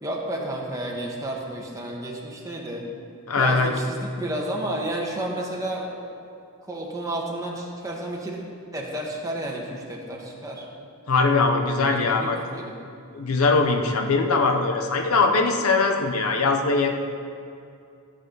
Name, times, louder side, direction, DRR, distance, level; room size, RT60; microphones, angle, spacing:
voice 1, 0.0-2.8 3.4-6.1 6.6-8.4 8.7-10.7 11.8-12.7, right 1 dB, 15° right, -2 dB, 1.5 m, -31 dB
voice 2, 3.3-3.7 11.1-12.4 13.1-16.9, left 3 dB, 85° left, 4 dB, 0.9 m, -21 dB
14.5 x 8.2 x 4.0 m, 2.5 s
head